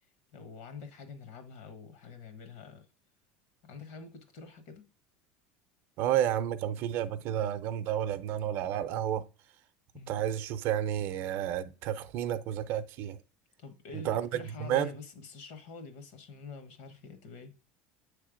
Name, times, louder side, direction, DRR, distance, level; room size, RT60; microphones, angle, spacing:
voice 1, 0.3-2.9 3.6-4.9 9.9-10.2 13.6-17.5, left 4 dB, 70° left, 1.3 m, -46 dB
voice 2, 6.0-9.2 10.1-13.2 13.9-14.9, right 10 dB, 50° right, 0.6 m, -31 dB
7.4 x 3.4 x 5.0 m
cardioid pair, 150°, 5 cm